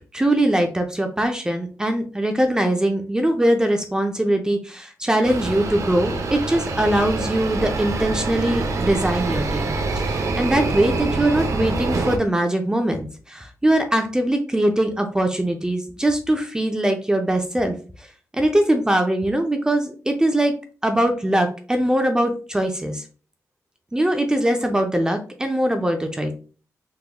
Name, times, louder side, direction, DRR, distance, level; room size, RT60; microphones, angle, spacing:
voice 1, 0.1-17.8 18.3-20.5 20.8-23.0 23.9-26.3, right 1 dB, 10° right, 5 dB, 0.4 m, -21 dB
sound 1, 5.2-12.2, right 3 dB, 60° right, 0.6 m, -25 dB
3.5 x 3.0 x 2.2 m, 0.37 s
wide cardioid pair, 115°, 6 cm